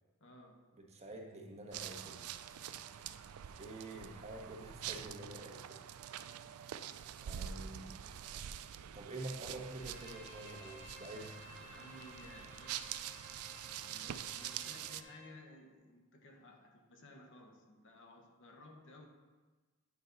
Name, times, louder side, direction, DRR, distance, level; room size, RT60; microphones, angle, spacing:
voice 1, 0.2-0.6 7.3-8.4 11.6-12.9 13.8-19.1, left 1 dB, 60° left, 3 dB, 1.1 m, -57 dB
voice 2, 0.9-2.2 3.6-5.8 7.2-8.0 8.9-11.4, right 2 dB, 30° right, 0 dB, 1.2 m, -47 dB
sound 1, 1.7-15.0, right 10 dB, 75° right, 0.4 m, -46 dB
Bowed string instrument, 9.7-15.3, left 2 dB, 35° left, 2.0 m, -56 dB
9.5 x 5.4 x 4.0 m, 1.3 s
head